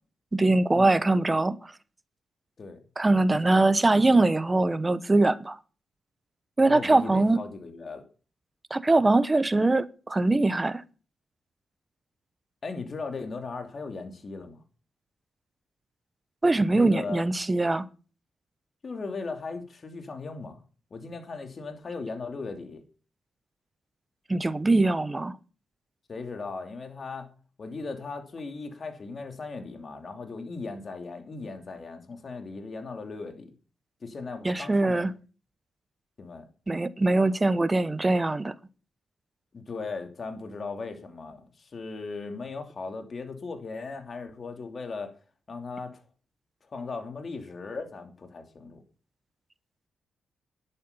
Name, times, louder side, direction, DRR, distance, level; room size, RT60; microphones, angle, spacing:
voice 1, 0.3-1.6 3.0-5.6 6.6-7.4 8.7-10.8 16.4-17.9 24.3-25.3 34.4-35.1 36.7-38.5, right 2 dB, 25° right, 1.0 m, -22 dB
voice 2, 3.3-3.6 6.6-8.0 12.6-14.6 16.7-17.2 18.8-20.6 20.9-22.8 26.1-27.3 27.6-33.5 34.0-35.0 36.2-36.5 39.5-45.1 45.5-46.0 46.7-48.8, left 4 dB, 50° left, 2.8 m, -37 dB
11.0 x 8.3 x 5.6 m
cardioid pair, 65°, 0 cm